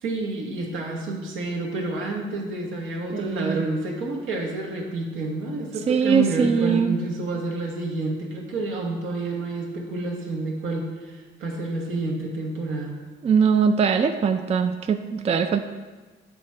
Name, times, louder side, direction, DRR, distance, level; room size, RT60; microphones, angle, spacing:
voice 1, 0.0-13.0, right 3 dB, 85° right, 0 dB, 1.3 m, -29 dB
voice 2, 3.1-3.6 5.9-7.0 13.2-15.6, right 6 dB, 30° right, 7 dB, 0.4 m, -21 dB
7.8 x 3.7 x 4.3 m, 1.3 s
cardioid pair, 90°, 20 cm